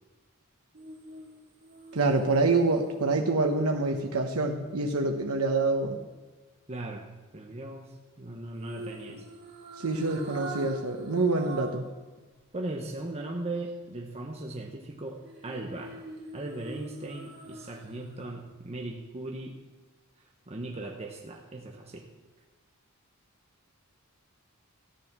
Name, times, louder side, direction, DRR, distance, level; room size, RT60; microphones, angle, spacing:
sound 1, 0.7-5.0 8.6-11.9 12.3-12.4 15.2-18.1 18.5-18.6, right 2 dB, 50° right, 2.7 m, -45 dB
voice 1, 1.9-6.0 9.1-9.2 9.8-11.8, right 3 dB, 90° right, 2 dB, 1.1 m, -26 dB
voice 2, 6.7-7.1 7.3-9.3 12.5-16.0 16.3-19.6 20.5-22.1, right 2 dB, 30° right, 1 dB, 1.1 m, -38 dB
14.0 x 9.8 x 6.1 m, 1.3 s
head